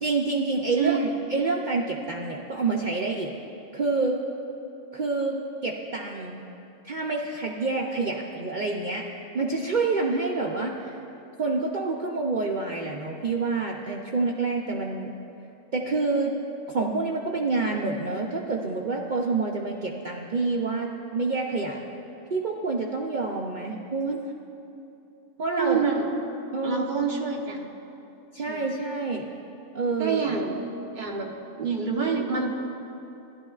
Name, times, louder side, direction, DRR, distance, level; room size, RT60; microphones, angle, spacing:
voice 1, 0.0-1.0 1.3-3.3 3.7-4.2 4.9-6.4 6.8-9.0 9.3-10.9 11.4-15.1 15.7-16.3 16.7-21.8 22.3-24.2 25.4-25.8 26.5-26.9 28.3-29.3 29.7-30.3, right 3 dB, 70° right, -1 dB, 0.4 m, -27 dB
voice 2, 0.8-1.1 25.6-26.1 26.6-27.7 28.5-28.7 30.0-30.6 30.9-32.5, right 6 dB, 35° right, -1 dB, 1.0 m, -27 dB
14.5 x 11.5 x 2.4 m, 2.8 s
omnidirectional pair, 1.5 m